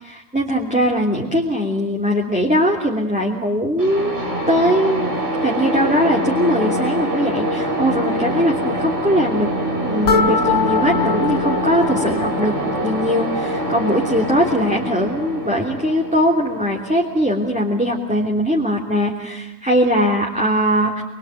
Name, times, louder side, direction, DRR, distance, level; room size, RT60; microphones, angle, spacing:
voice 1, 0.0-5.1 5.4-9.5 9.8-12.6 12.8-21.0, equal, 5° right, -2 dB, 3.1 m, -20 dB
sound 1, 3.8-17.5, equal, 60° right, 6.3 m, -24 dB
sound 2, 10.1-13.0, left 5 dB, 80° left, 1.6 m, -23 dB
27.5 x 23.5 x 9.2 m, 0.96 s
omnidirectional pair, 1.4 m